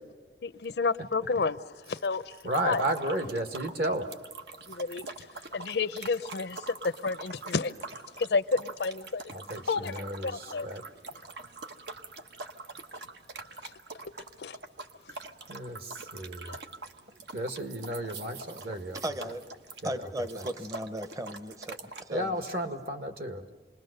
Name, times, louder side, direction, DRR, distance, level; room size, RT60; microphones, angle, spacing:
voice 1, 0.4-1.6 1.9-2.3 2.6-2.8 4.7-5.1 5.5-6.6 6.8-7.7 8.2-9.3 9.7-10.7 14.4-14.6 16.5-16.6, left 4 dB, 75° left, 0.6 m, -30 dB
voice 2, 2.4-4.1 9.3-10.8 15.5-16.6 17.3-19.0 19.8-20.5 22.1-23.5, right 1 dB, 60° right, 1.7 m, -33 dB
sound 1, 2.5-22.0, right 3 dB, 80° right, 1.1 m, -44 dB
voice 3, 18.9-19.4 19.8-22.3, right 1 dB, 20° right, 0.7 m, -36 dB
27.0 x 21.0 x 6.6 m
head